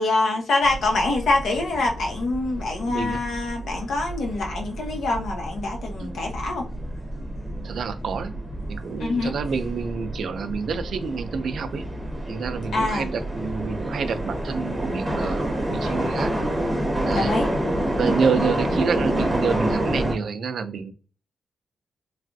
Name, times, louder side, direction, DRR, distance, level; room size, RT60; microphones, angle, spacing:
voice 1, 0.0-6.6 9.0-9.3 12.7-13.1 17.1-17.5, left 2 dB, 80° left, 2 dB, 0.9 m, -25 dB
sound 1, 0.6-20.1, right 1 dB, 10° right, 0.9 m, -28 dB
voice 2, 2.8-3.2 6.0-6.2 7.6-8.3 8.7-11.8 12.3-16.3 17.1-17.3 18.0-20.9, right 5 dB, 70° right, 10 dB, 0.4 m, -28 dB
3.3 x 2.3 x 2.6 m, 0.38 s
wide cardioid pair, 115°, 0 cm